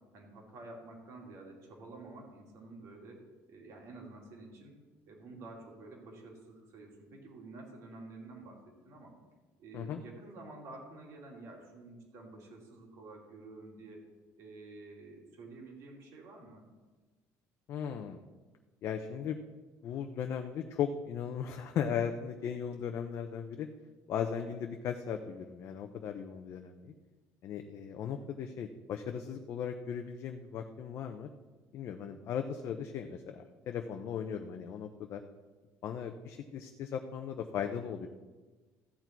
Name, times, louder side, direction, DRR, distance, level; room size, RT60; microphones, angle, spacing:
voice 1, 0.1-3.2 3.5-4.7 5.1-9.2 9.6-14.0 14.4-16.7 28.1-28.3, right 2 dB, 55° right, 0 dB, 2.7 m, -50 dB
voice 2, 17.7-18.2 18.8-19.4 19.8-23.7 24.1-26.9 27.4-31.3 31.7-35.2 35.8-38.1, left 8 dB, 45° left, 5 dB, 0.6 m, -37 dB
14.0 x 8.3 x 4.5 m, 1.3 s
cardioid pair, 180°, 6 cm